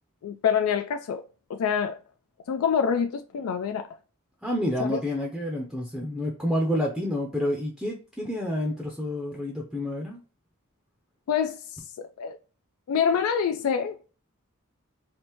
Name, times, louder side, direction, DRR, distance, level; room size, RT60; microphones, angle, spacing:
voice 1, 0.2-1.2 1.5-2.0 2.5-3.9 4.9-5.0 11.3-12.4 12.9-14.1, left 7 dB, 75° left, 0.3 m, -26 dB
voice 2, 4.4-10.2, left 1 dB, ahead, 0.5 m, -29 dB
3.5 x 2.5 x 2.9 m
head